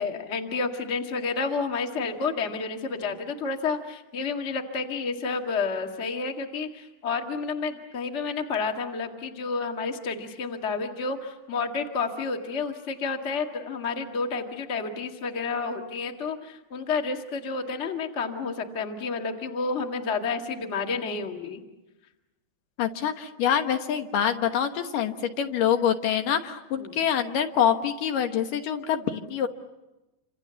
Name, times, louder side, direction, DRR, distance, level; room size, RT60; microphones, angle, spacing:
voice 1, 0.0-21.6 26.8-27.0, left 4 dB, 25° left, 4 dB, 1.6 m, -30 dB
voice 2, 22.8-29.5, left 9 dB, 70° left, 6 dB, 2.7 m, -25 dB
28.0 x 26.5 x 7.0 m, 1.0 s
omnidirectional pair, 4.1 m